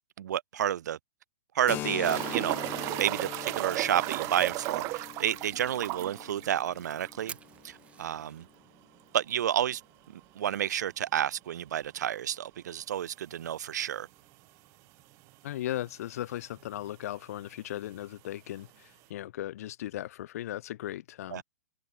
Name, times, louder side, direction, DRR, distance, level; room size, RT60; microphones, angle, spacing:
voice 1, 0.2-1.0 1.5-2.6 3.0-7.4 7.6-8.4 9.1-9.8 10.1-14.1 21.3-21.4, right 10 dB, 65° right, 0.6 m, -30 dB
Keyboard (musical), 1.7-9.0, left 15 dB, 20° left, 0.4 m, -43 dB
sound 1, 2.0-7.4 7.7-7.8 8.1-8.2 11.0-11.1 12.8-12.9 13.7-13.8 14.0-14.1 15.0-15.1 15.3-15.9 16.8-16.9, right 24 dB, 30° right, 1.2 m, -35 dB
Fire, 6.2-17.7, right 6 dB, 10° right, 4.1 m, -56 dB
voice 2, 15.4-21.4, left 13 dB, 55° left, 2.2 m, -37 dB
hypercardioid pair, 150°, 10 cm